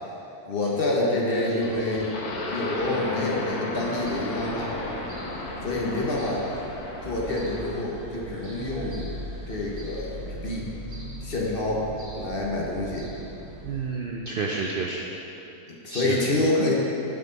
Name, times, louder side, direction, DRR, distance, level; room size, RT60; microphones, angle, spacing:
voice 1, 0.5-2.1 2.5-4.7 5.6-6.5 7.0-9.1 9.5-10.7 11.2-11.9 12.2-13.1 15.7-16.7, left 2 dB, 40° left, -3 dB, 1.1 m, -27 dB
voice 2, 1.4-1.7 13.6-15.1 15.9-16.2, right 4 dB, 85° right, -1 dB, 0.4 m, -30 dB
sound 1, 1.6-7.9, left 2 dB, 80° left, 1.4 m, -34 dB
sound 2, 3.9-13.8, right 1 dB, 65° right, 1.8 m, -40 dB
8.6 x 6.5 x 3.9 m, 2.9 s
omnidirectional pair, 1.6 m